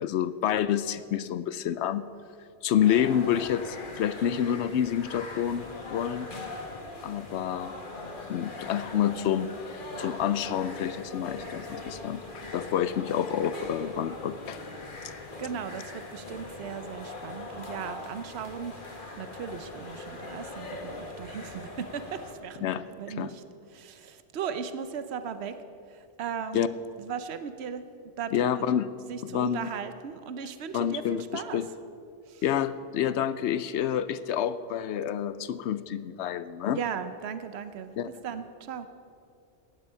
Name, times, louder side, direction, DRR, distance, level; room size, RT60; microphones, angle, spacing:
voice 1, 0.0-2.1 2.6-6.3 7.0-7.7 8.3-12.2 12.5-14.6 22.6-22.8 23.2-23.3 26.5-26.7 28.3-28.9 29.2-29.7 30.7-31.7 32.4-36.8 38.0-38.1, left 9 dB, 75° left, 14 dB, 0.8 m, -28 dB
sound 1, 2.8-22.3, left 2 dB, 45° left, 1.6 m, -41 dB
voice 2, 15.4-18.7 19.2-23.4 23.7-25.6 25.9-26.7 27.0-27.8 28.2-28.6 29.1-31.6 32.3-32.4 36.7-37.9 38.2-38.9, right 7 dB, 65° right, 10 dB, 1.0 m, -37 dB
15.5 x 10.5 x 5.6 m, 2.4 s
omnidirectional pair, 1.2 m